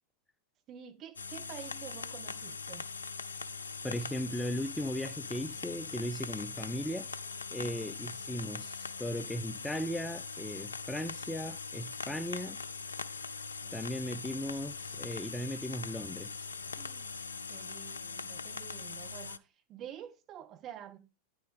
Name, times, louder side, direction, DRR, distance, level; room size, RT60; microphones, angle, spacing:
voice 1, 0.7-2.9 7.5-8.0 13.6-13.8 16.8-17.1 17.5-21.0, right 10 dB, 35° right, 1.7 m, -49 dB
sound 1, 1.2-19.4, left 5 dB, 75° left, 0.4 m, -41 dB
voice 2, 3.8-7.1 7.5-12.6 13.7-16.5, left 1 dB, 5° left, 0.5 m, -37 dB
9.3 x 7.6 x 3.6 m
figure-of-eight pair, 90°, 0 cm